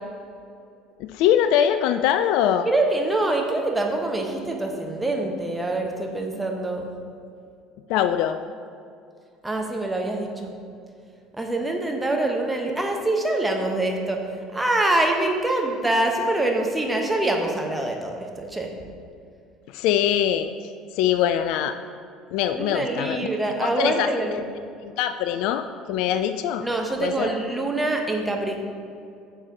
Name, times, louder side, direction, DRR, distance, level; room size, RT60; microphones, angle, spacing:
voice 1, 1.1-2.7 7.9-8.4 19.7-20.5 20.9-21.8 22.3-23.3 23.6-24.4 24.8-26.7 27.0-27.3, left 10 dB, 55° left, 10 dB, 0.3 m, -23 dB
voice 2, 2.6-6.9 9.4-10.5 11.4-14.2 14.5-18.7 22.5-24.4 26.6-28.6, right 2 dB, 10° right, 1 dB, 1.3 m, -25 dB
9.4 x 6.8 x 4.0 m, 2.4 s
figure-of-eight pair, 60°, 0 cm